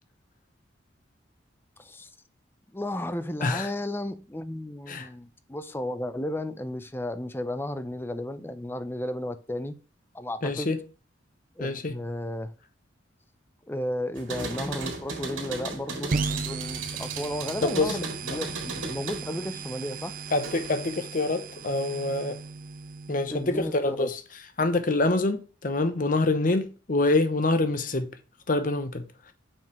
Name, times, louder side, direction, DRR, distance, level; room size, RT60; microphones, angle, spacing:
voice 1, 1.8-2.1 2.7-9.8 10.1-10.7 11.6-12.5 13.7-20.1 23.3-24.1, left 1 dB, 10° left, 0.5 m, -33 dB
voice 2, 10.4-10.8 11.6-11.9 17.6-17.9 20.3-22.4 23.1-24.2 24.6-28.1 28.5-29.0, left 2 dB, 45° left, 0.8 m, -26 dB
sound 1, 14.2-20.9 21.2-22.1, right 3 dB, 80° right, 2.2 m, -37 dB
sound 2, 16.1-23.7, right 4 dB, 45° right, 0.5 m, -36 dB
7.1 x 5.4 x 3.0 m
head